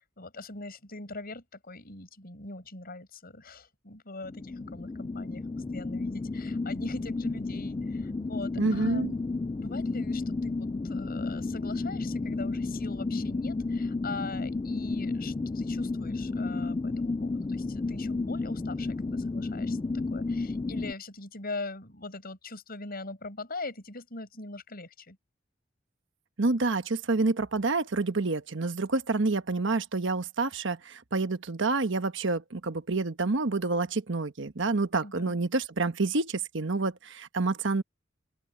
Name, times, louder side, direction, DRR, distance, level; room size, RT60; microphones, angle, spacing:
voice 1, 0.0-5.4 5.7-9.2 9.6-25.2 35.0-35.4, left 3 dB, 50° left, 7.6 m, -41 dB
sound 1, 4.2-20.9, left 3 dB, 20° left, 0.3 m, -32 dB
voice 2, 8.6-9.1 26.4-37.8, right 3 dB, 70° right, 1.2 m, -28 dB
open air
head